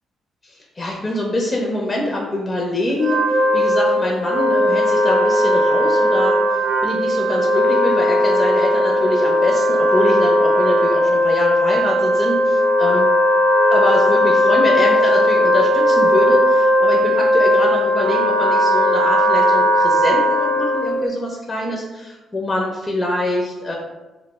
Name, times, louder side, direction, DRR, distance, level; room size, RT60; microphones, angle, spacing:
voice 1, 0.4-3.2 3.5-6.4 6.8-13.1 13.7-23.7, left 1 dB, 30° left, -1 dB, 0.4 m, -24 dB
Wind instrument woodwind instrument, 2.9-21.0, equal, 85° right, 0.4 m, -17 dB
2.2 x 2.0 x 3.3 m, 1.1 s
cardioid pair, 90°, 0 cm